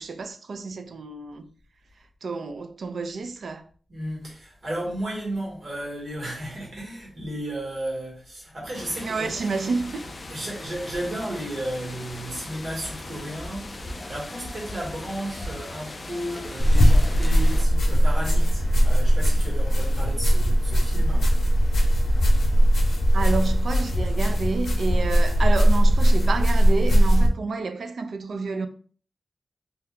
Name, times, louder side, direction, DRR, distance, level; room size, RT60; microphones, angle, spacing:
voice 1, 0.0-1.5 2.2-3.6 9.0-10.1 23.1-28.7, right 4 dB, 75° right, 0.3 m, -29 dB
voice 2, 3.9-9.4 10.3-21.3, right 1 dB, 50° right, 1.5 m, -34 dB
sound 1, 8.7-17.6, left 2 dB, 35° left, 0.3 m, -38 dB
sound 2, 16.6-27.3, equal, 85° left, 0.6 m, -19 dB
2.7 x 2.2 x 3.5 m
wide cardioid pair, 175°, 0 cm